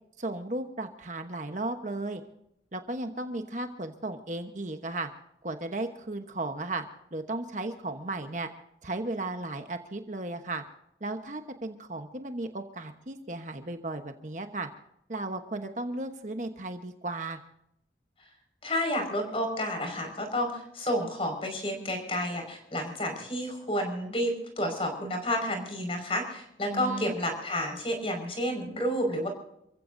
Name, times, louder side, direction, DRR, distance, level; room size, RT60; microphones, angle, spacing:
voice 1, 0.2-2.2 2.7-5.1 5.4-6.8 7.1-8.5 8.8-10.6 11.0-14.7 15.1-17.4 26.7-27.1, right 2 dB, 40° right, 6 dB, 1.1 m, -35 dB
voice 2, 18.6-29.3, equal, 30° left, 4 dB, 5.3 m, -30 dB
28.5 x 15.5 x 2.7 m, 0.79 s
head